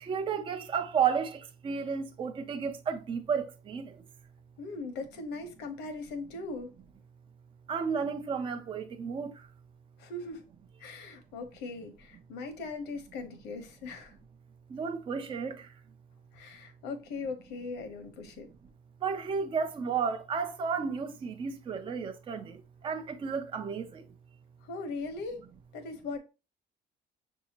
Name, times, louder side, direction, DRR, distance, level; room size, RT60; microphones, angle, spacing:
voice 1, 0.0-3.9 7.7-9.3 14.7-15.7 19.0-22.5 22.8-24.0, right 6 dB, 30° right, 0.5 m, -32 dB
voice 2, 4.6-6.7 10.0-10.4 10.8-14.1 16.3-18.5 24.6-25.4 25.7-26.2, left 3 dB, 85° left, 1.0 m, -39 dB
6.2 x 2.7 x 2.8 m
cardioid pair, 110°, 17 cm